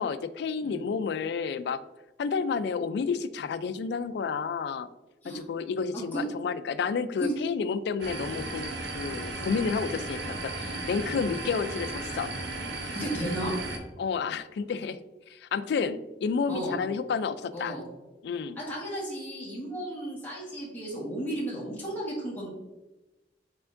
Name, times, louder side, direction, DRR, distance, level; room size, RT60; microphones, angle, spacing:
voice 1, 0.0-1.8 2.2-4.9 5.2-12.3 14.0-15.0 15.3-17.8 18.2-18.6, left 5 dB, 65° left, 13 dB, 0.3 m, -30 dB
voice 2, 5.9-6.2 7.2-7.3 11.0-11.2 12.9-13.5 16.5-16.8 17.5-17.8 18.6-22.5, right 1 dB, 10° left, -6 dB, 1.3 m, -34 dB
sound 1, 8.0-13.8, right 2 dB, 70° right, 0.8 m, -35 dB
4.7 x 4.4 x 2.5 m, 1.1 s
head